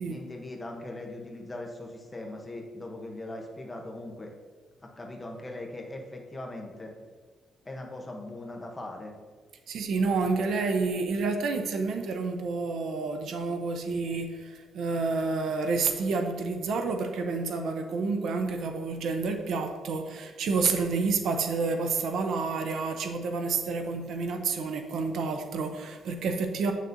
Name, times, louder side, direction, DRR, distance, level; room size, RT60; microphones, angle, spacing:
voice 1, 0.1-4.3 4.8-6.9 7.6-9.1, left 2 dB, 15° left, 1 dB, 0.8 m, -40 dB
voice 2, 9.7-26.7, right 4 dB, 65° right, 6 dB, 0.6 m, -29 dB
8.0 x 6.4 x 2.6 m, 1.5 s
cardioid pair, 165°, 0 cm